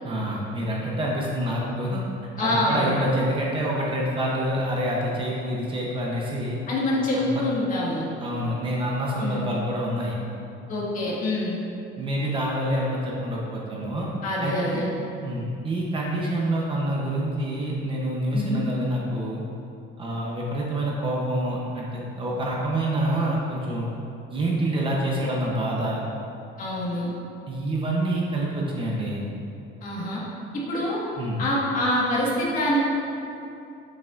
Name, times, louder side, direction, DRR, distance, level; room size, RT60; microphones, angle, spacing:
voice 1, 0.0-2.0 2.4-6.6 7.2-7.4 8.2-10.2 12.0-14.1 14.4-14.9 15.2-19.4 20.0-23.9 24.3-26.0 27.5-29.2 31.2-31.4, right 1 dB, 25° right, -3 dB, 0.8 m, -27 dB
voice 2, 2.4-2.9 6.7-8.1 9.2-9.4 10.7-11.6 14.2-14.8 18.3-18.6 26.6-27.1 29.8-30.2 30.7-31.0 31.4-32.8, left 1 dB, 40° left, -5 dB, 1.6 m, -25 dB
8.4 x 7.6 x 2.5 m, 2.7 s
cardioid pair, 175°, 21 cm